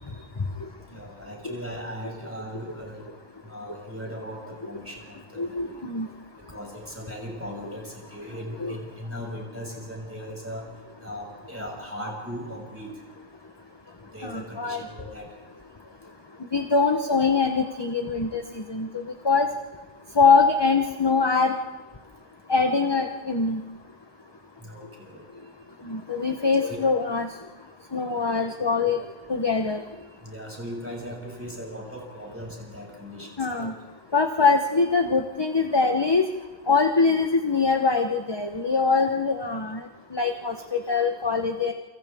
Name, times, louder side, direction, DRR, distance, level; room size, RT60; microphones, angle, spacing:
voice 1, 0.9-3.0 3.4-5.7 6.5-10.6 11.0-12.9 14.1-15.3 24.6-25.2 26.6-26.8 28.7-28.9 30.2-33.7, equal, 10° right, -1 dB, 6.4 m, -38 dB
voice 2, 5.4-6.1 8.6-8.7 14.2-14.8 16.5-18.9 19.2-19.5 20.2-21.5 22.5-23.6 25.9-27.3 27.9-29.0 29.3-29.8 33.4-33.7 34.1-36.2 36.7-39.8 40.1-41.7, left 4 dB, 25° left, 5 dB, 1.0 m, -23 dB
29.0 x 26.5 x 3.6 m, 1.3 s
omnidirectional pair, 1.1 m